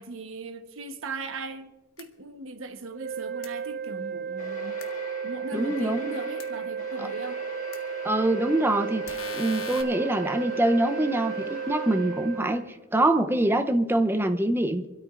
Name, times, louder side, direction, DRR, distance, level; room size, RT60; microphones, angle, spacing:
voice 1, 0.0-1.7 2.0-4.8 5.2-7.4, right 3 dB, 75° right, 1.1 m, -38 dB
sound 1, 2.0-2.1 3.4-3.5 4.8-4.9 6.4-6.5 7.7-7.8 9.1-9.8, left 5 dB, 80° left, 1.1 m, -38 dB
sound 2, 2.9-12.6, right 7 dB, 45° right, 0.8 m, -34 dB
sound 3, 4.4-12.7, left 2 dB, 40° left, 1.5 m, -43 dB
voice 2, 5.5-6.1 7.0-7.1 8.0-14.9, right 1 dB, 10° right, 0.6 m, -25 dB
26.5 x 13.0 x 2.5 m
head